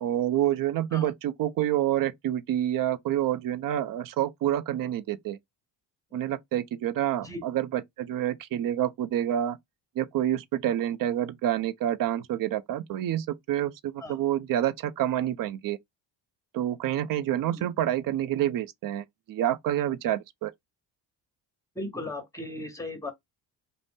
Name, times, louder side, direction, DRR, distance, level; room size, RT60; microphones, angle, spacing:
voice 1, 0.0-5.4 6.1-9.6 10.0-15.8 16.5-20.5, right 11 dB, 50° right, 0.5 m, -28 dB
voice 2, 21.7-23.1, left 2 dB, 5° left, 1.1 m, -36 dB
2.5 x 2.1 x 3.4 m
supercardioid pair, 80°, 43 cm